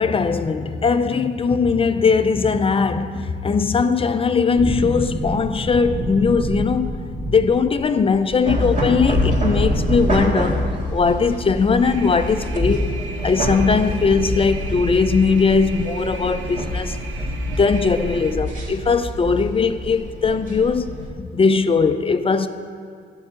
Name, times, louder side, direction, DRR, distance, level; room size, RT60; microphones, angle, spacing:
voice 1, 0.0-6.9 7.3-10.6 10.9-12.9 13.2-17.0 17.6-22.5, left 5 dB, 30° left, 0.4 m, -19 dB
sound 1, 4.6-13.4 13.7-13.8 14.0-15.1 15.3-15.4, equal, 25° right, 1.8 m, -31 dB
sound 2, 8.4-21.1, equal, 40° right, 1.9 m, -25 dB
sound 3, 11.8-18.4, right 4 dB, 80° right, 0.8 m, -37 dB
11.5 x 4.7 x 7.6 m
cardioid pair, 90°, 20 cm